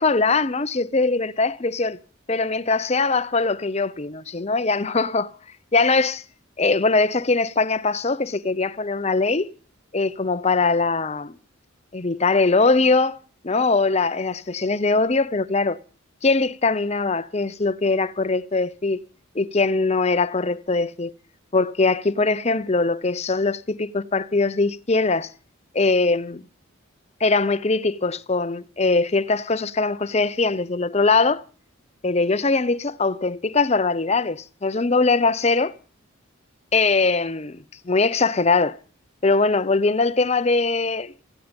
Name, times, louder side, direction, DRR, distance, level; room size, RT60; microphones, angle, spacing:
voice 1, 0.0-2.0 2.3-5.3 5.7-6.2 6.6-9.5 9.9-11.3 11.9-13.2 13.4-15.8 16.2-19.0 19.3-21.1 21.5-25.3 25.7-26.4 27.2-31.4 32.0-35.7 36.7-38.8 39.2-41.1, left 3 dB, 30° left, 0.7 m, -21 dB
18.0 x 14.5 x 5.3 m
head